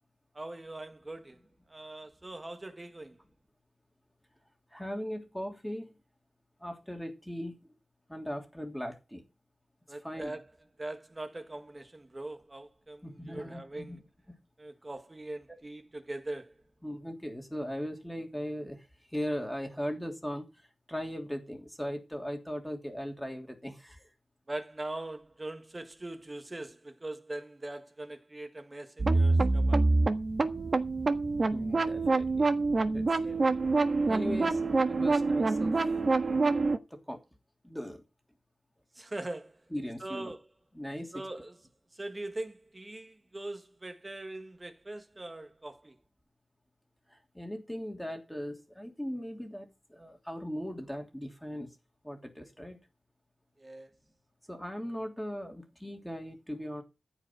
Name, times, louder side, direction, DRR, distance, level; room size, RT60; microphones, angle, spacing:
voice 1, 0.3-1.4 1.7-3.2 9.9-10.5 10.8-14.0 14.6-16.5 24.5-29.8 33.2-33.4 38.9-39.6 40.0-40.5 41.1-41.6 41.9-46.0 53.6-53.9, right 2 dB, 25° right, 1.5 m, -41 dB
voice 2, 4.7-6.0 6.6-7.7 8.1-9.2 10.0-10.4 13.0-14.0 16.8-18.8 19.1-20.5 20.9-24.1 31.5-32.5 32.9-33.3 34.1-34.6 34.9-35.8 36.9-37.2 37.6-38.0 39.7-40.3 40.7-41.2 47.1-51.7 52.0-52.8 54.5-56.8, equal, 5° left, 3.1 m, -38 dB
sound 1, 29.0-36.8, right 3 dB, 45° right, 1.4 m, -26 dB
14.5 x 5.3 x 7.9 m
wide cardioid pair, 80°, 0 cm